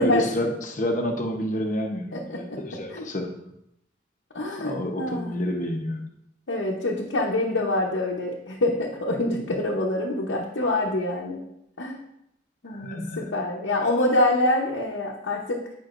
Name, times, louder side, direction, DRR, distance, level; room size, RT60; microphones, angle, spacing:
voice 1, 0.0-3.3 4.6-6.0 12.7-13.2, left 1 dB, 45° left, 2 dB, 0.9 m, -29 dB
voice 2, 2.1-2.6 2.9-3.0 4.3-5.4 6.5-11.4 11.8-12.0 12.6-15.6, left 1 dB, 80° left, -3 dB, 0.9 m, -25 dB
9.3 x 5.4 x 2.5 m, 0.79 s
head